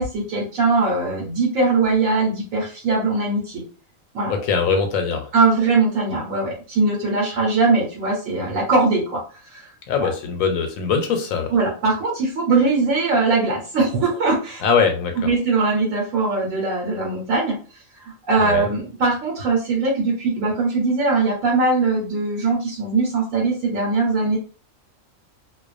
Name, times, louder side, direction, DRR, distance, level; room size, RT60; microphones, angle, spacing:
voice 1, 0.0-3.6 4.1-4.3 5.3-9.2 9.5-9.7 10.0-10.1 11.5-14.6 15.2-17.6 18.0-24.4, right 3 dB, 85° right, -2 dB, 1.2 m, -21 dB
voice 2, 4.3-5.3 9.9-11.5 14.6-15.3 18.4-18.7, left 5 dB, 90° left, 5 dB, 1.0 m, -22 dB
2.3 x 2.2 x 2.4 m, 0.36 s
omnidirectional pair, 1.4 m